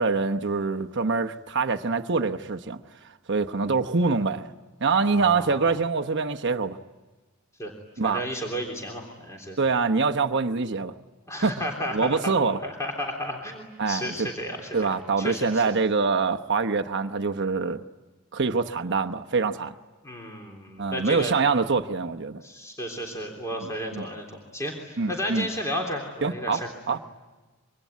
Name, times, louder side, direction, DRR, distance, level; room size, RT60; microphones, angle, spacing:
voice 1, 0.0-2.8 3.3-4.5 4.8-6.8 8.0-8.2 9.6-10.9 11.4-11.6 11.9-12.6 13.8-14.3 14.7-17.8 18.3-19.7 20.8-22.4 23.6-24.1 25.0-25.5 26.2-27.0, right 4 dB, 60° right, 1.0 m, -25 dB
voice 2, 5.0-5.7 7.6-7.7 8.0-9.6 11.3-12.3 12.6-14.9 15.2-15.6 20.0-21.3 22.4-26.6, equal, 15° left, 3.5 m, -33 dB
26.5 x 24.5 x 9.4 m
head